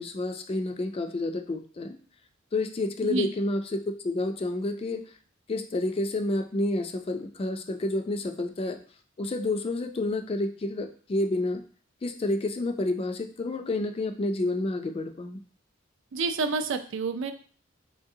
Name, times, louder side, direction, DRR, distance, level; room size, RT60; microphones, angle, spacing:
voice 1, 0.0-2.0 2.5-5.0 5.5-8.8 9.2-11.6 12.0-15.4, left 2 dB, 30° left, 7 dB, 0.3 m, -29 dB
voice 2, 16.1-17.3, right 4 dB, 70° right, 8 dB, 0.4 m, -28 dB
3.7 x 3.2 x 2.7 m, 0.42 s
head